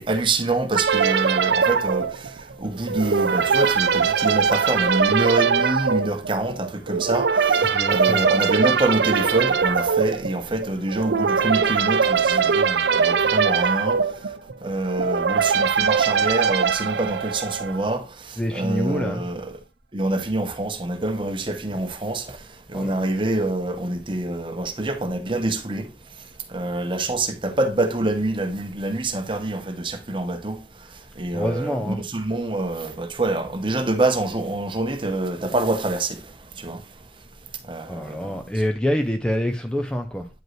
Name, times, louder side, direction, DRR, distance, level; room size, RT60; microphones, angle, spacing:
voice 1, 0.0-2.3 2.6-14.0 14.6-19.6 19.9-22.4 22.7-25.9 26.5-30.6 31.2-36.2 36.6-36.8 37.7-38.4, right 2 dB, 30° right, 0.8 m, -26 dB
sound 1, 0.7-17.9, right 6 dB, 80° right, 0.5 m, -21 dB
voice 2, 7.6-8.2 18.4-19.2 22.7-22.9 31.3-32.0 37.9-40.3, equal, 5° left, 0.5 m, -26 dB
9.0 x 5.4 x 3.1 m
head